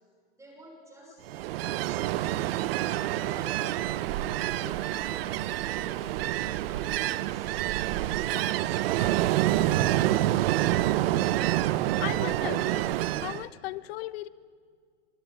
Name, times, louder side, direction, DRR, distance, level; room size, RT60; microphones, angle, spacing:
voice 1, 0.4-2.7 3.1-6.3 6.7-7.6, equal, 10° right, 0 dB, 5.9 m, -51 dB
Ocean, 1.3-13.4, right 14 dB, 55° right, 1.0 m, -27 dB
voice 2, 12.0-12.9 13.2-14.3, left 16 dB, 55° left, 16 dB, 1.1 m, -36 dB
24.0 x 22.5 x 9.4 m, 2.1 s
hypercardioid pair, 135°, 35 cm